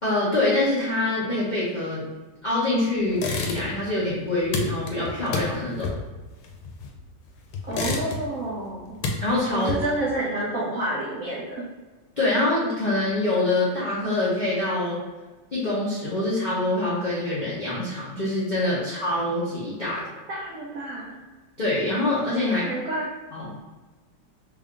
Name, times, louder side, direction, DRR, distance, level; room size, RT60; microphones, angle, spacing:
voice 1, 0.0-2.0 2.4-5.9 9.2-9.7 12.2-15.0 15.5-20.0 21.6-22.7 23.3-23.6, left 2 dB, 65° left, -8 dB, 0.4 m, -25 dB
sound 1, 3.1-3.9 4.2-7.1 7.5-8.5 8.8-10.1, left 3 dB, 85° left, 1.4 m, -30 dB
voice 2, 7.7-8.9 9.5-11.7 20.3-21.2 22.4-23.1, right 1 dB, 65° right, -4 dB, 0.9 m, -29 dB
3.6 x 2.4 x 3.6 m, 1.2 s
omnidirectional pair, 2.1 m